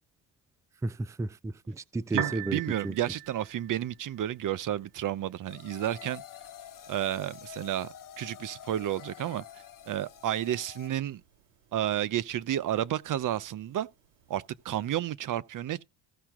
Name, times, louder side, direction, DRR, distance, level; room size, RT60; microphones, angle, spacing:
voice 1, 0.8-2.9, right 2 dB, 5° right, 0.4 m, -33 dB
Piano, 2.0-15.1, right 11 dB, 75° right, 2.0 m, -46 dB
voice 2, 2.1-6.2 6.9-7.9 8.2-9.4 9.9-11.2 11.7-13.9 14.3-15.8, right 12 dB, 45° right, 0.8 m, -31 dB
sound 1, 5.5-10.9, left 9 dB, 45° left, 1.1 m, -47 dB
15.0 x 5.7 x 3.7 m
supercardioid pair, 80°, 45 cm